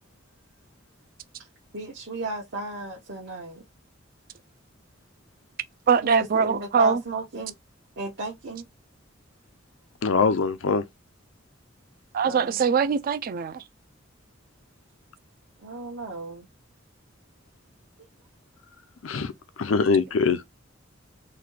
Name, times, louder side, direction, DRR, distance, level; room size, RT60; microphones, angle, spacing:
voice 1, 1.7-3.6 6.0-7.5 8.0-8.6 12.2-12.6 15.6-16.4, right 2 dB, 65° right, 0.9 m, -34 dB
voice 2, 5.9-7.0 12.1-13.6, right 6 dB, 45° right, 0.4 m, -22 dB
voice 3, 10.0-10.8 19.0-19.3 19.6-20.4, left 4 dB, 90° left, 0.5 m, -22 dB
3.9 x 2.3 x 3.1 m
head